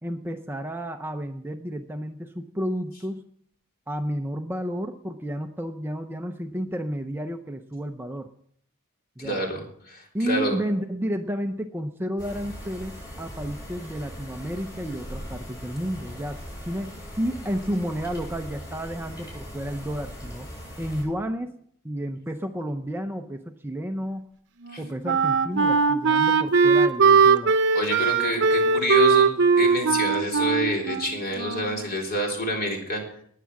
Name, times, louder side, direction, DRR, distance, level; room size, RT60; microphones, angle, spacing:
voice 1, 0.0-3.2 3.9-8.3 9.2-9.4 10.1-20.5 20.8-21.6 21.8-24.3 24.8-27.5, equal, 10° right, 6 dB, 0.6 m, -31 dB
voice 2, 9.2-10.5 24.7-24.8 27.7-29.3 29.6-33.0, left 1 dB, 45° left, 1 dB, 3.7 m, -27 dB
sound 1, 12.2-21.0, equal, 15° left, 7.5 m, -40 dB
Wind instrument woodwind instrument, 24.6-31.9, right 5 dB, 55° right, 0.8 m, -20 dB
19.5 x 7.5 x 5.9 m, 0.65 s
head